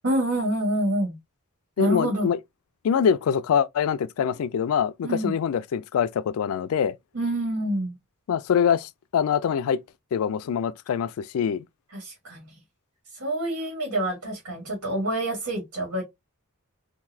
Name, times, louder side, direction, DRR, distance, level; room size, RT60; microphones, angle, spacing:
voice 1, 0.0-1.1 1.8-2.3 5.0-5.3 7.1-7.9 11.9-12.5 13.2-16.0, right 1 dB, 80° right, 1.9 m, -27 dB
voice 2, 1.8-2.4 2.8-7.0 8.3-9.8 10.1-11.6, left 7 dB, 70° left, 0.3 m, -24 dB
3.8 x 2.6 x 2.6 m
head